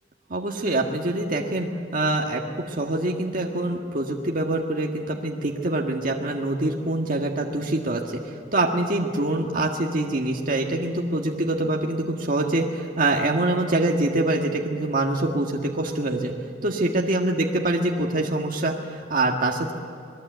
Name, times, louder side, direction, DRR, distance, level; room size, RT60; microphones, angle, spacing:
voice 1, 0.3-2.4 2.7-16.3 16.6-19.7, right 2 dB, 50° right, 0 dB, 1.6 m, -25 dB
26.5 x 19.5 x 8.1 m, 2.4 s
head